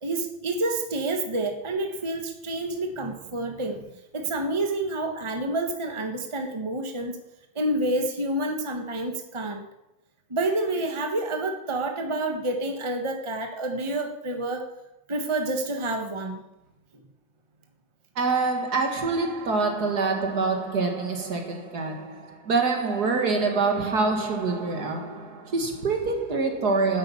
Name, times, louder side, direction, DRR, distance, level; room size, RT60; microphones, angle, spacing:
voice 1, 0.0-3.8 4.1-7.2 7.5-9.7 10.3-14.7 15.1-16.4, right 2 dB, 15° right, 1.4 m, -28 dB
voice 2, 18.2-27.0, right 4 dB, 55° right, 2.1 m, -25 dB
10.5 x 8.8 x 7.1 m
omnidirectional pair, 2.0 m